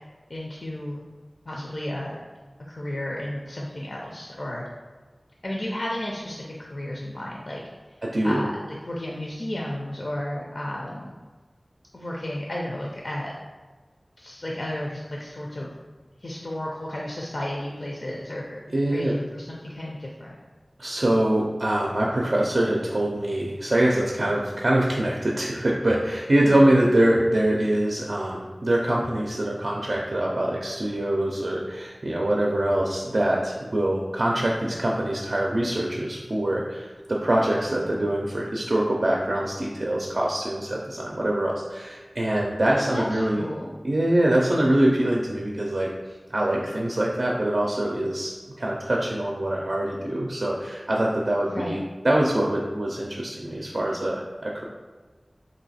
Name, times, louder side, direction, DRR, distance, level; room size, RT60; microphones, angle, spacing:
voice 1, 0.3-1.0 1.5-2.2 2.7-4.7 5.4-7.6 7.9-11.2 11.9-13.3 14.2-15.7 16.2-18.6 18.9-20.4 26.4-26.6 42.7-43.7 51.5-51.8, left 1 dB, 65° left, -3 dB, 0.4 m, -33 dB
voice 2, 18.7-19.2 20.8-43.4 43.8-45.9 46.3-51.8 52.0-54.6, right 1 dB, 65° right, -2 dB, 0.4 m, -24 dB
3.1 x 2.6 x 4.1 m, 1.4 s
wide cardioid pair, 50°, 0 cm